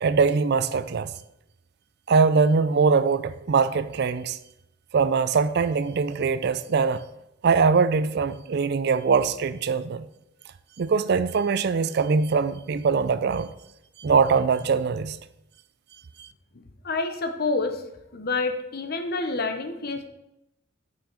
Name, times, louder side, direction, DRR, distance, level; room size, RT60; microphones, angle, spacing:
voice 1, 0.0-1.1 2.1-4.4 4.9-7.0 7.4-10.1 10.8-13.5 14.0-15.2 16.2-16.3, right 5 dB, 55° right, 0.4 m, -22 dB
voice 2, 16.8-17.8 18.1-20.1, left 3 dB, 50° left, 0.9 m, -28 dB
8.8 x 5.7 x 4.5 m
head